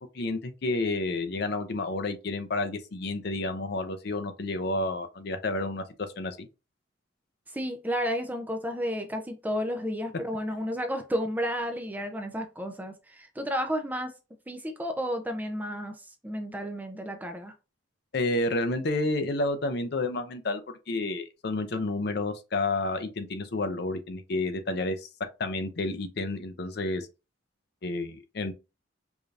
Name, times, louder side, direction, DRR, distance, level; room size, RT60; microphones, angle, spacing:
voice 1, 0.1-5.8 6.2-6.5 18.1-20.6 20.9-25.1 25.4-27.1 27.8-28.5, left 2 dB, 50° left, 0.6 m, -30 dB
voice 2, 7.5-14.1 14.5-17.5, equal, 10° right, 0.4 m, -32 dB
4.8 x 2.6 x 2.4 m
head